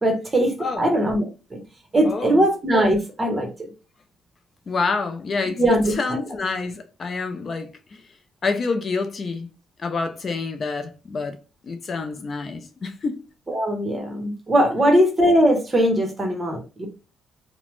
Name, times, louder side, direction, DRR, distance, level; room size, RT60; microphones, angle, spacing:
voice 1, 0.0-1.6 1.9-3.5 5.6-5.9 13.5-16.9, equal, 25° right, 0.9 m, -20 dB
voice 2, 0.6-0.9 2.0-2.5 4.7-8.0 8.4-9.5 9.8-11.4 11.6-13.2, left 4 dB, 45° left, 0.4 m, -28 dB
2.9 x 2.0 x 3.1 m
cardioid pair, 90°, 0 cm